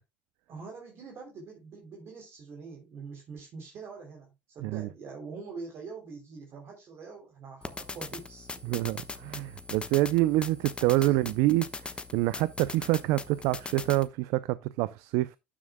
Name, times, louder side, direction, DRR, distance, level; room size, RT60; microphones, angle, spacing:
voice 1, 0.5-4.3 4.5-8.9 11.1-11.3, right 4 dB, 50° right, 3.2 m, -44 dB
sound 1, 7.6-14.1, left 3 dB, 20° left, 1.1 m, -41 dB
voice 2, 8.6-15.4, right 17 dB, 75° right, 0.5 m, -27 dB
12.0 x 7.4 x 2.2 m
supercardioid pair, 90°, 5 cm